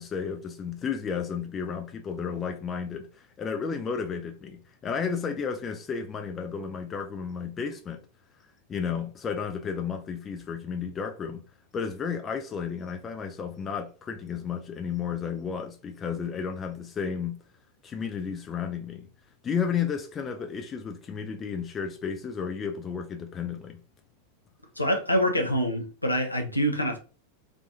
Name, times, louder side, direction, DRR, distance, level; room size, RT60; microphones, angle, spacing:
voice 1, 0.0-8.0 8.7-11.4 11.7-17.4 17.8-19.1 19.4-23.8, left 6 dB, 25° left, 0.4 m, -32 dB
voice 2, 24.8-27.0, equal, 85° left, 0.5 m, -25 dB
2.5 x 2.3 x 2.7 m
figure-of-eight pair, 90°, 0 cm